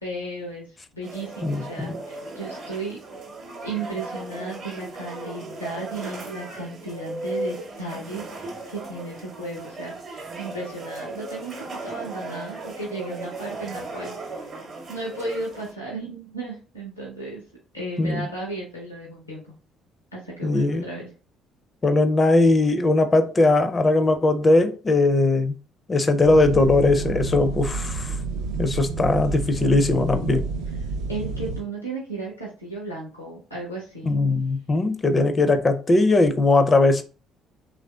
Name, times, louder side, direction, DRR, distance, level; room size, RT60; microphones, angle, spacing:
voice 1, 0.0-3.0 3.6-11.6 11.8-14.6 14.9-17.4 17.7-19.5 20.1-21.1 31.1-34.2, right 2 dB, 90° left, 0.6 m, -35 dB
sound 1, 1.0-15.7, right 2 dB, 50° right, 0.8 m, -36 dB
voice 2, 1.4-2.0 18.0-18.2 20.4-20.8 21.8-25.5 25.9-28.2 28.6-30.4 34.1-37.0, left 2 dB, 30° left, 0.4 m, -19 dB
sound 2, 26.2-31.6, right 4 dB, 65° right, 0.4 m, -29 dB
3.2 x 2.5 x 2.2 m
figure-of-eight pair, 50°, 0 cm